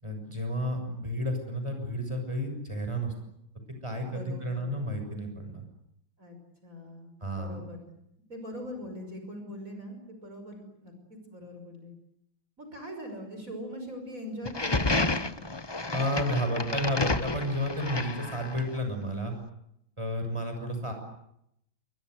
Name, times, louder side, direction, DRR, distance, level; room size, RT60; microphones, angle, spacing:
voice 1, 0.0-3.1 3.8-5.6 7.2-7.6 15.9-19.3 20.0-20.9, equal, 15° right, 5 dB, 6.7 m, -31 dB
voice 2, 4.0-4.7 6.2-7.9 8.3-11.9 12.6-15.4, equal, 40° right, 5 dB, 6.1 m, -42 dB
sound 1, 14.4-18.8, left 2 dB, 25° left, 0.6 m, -30 dB
29.0 x 24.5 x 8.0 m, 0.78 s
omnidirectional pair, 2.2 m